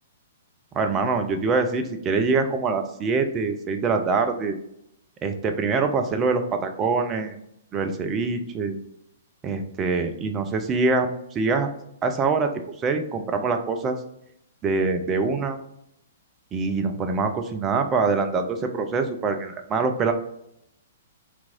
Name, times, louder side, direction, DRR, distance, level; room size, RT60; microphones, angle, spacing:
voice 1, 0.7-4.5 5.2-7.4 7.7-8.8 9.4-11.7 12.0-12.5 12.8-14.0 14.6-15.6 16.5-20.1, right 4 dB, 20° right, 6 dB, 0.4 m, -24 dB
2.9 x 2.5 x 3.6 m, 0.77 s
figure-of-eight pair, 115°, 0 cm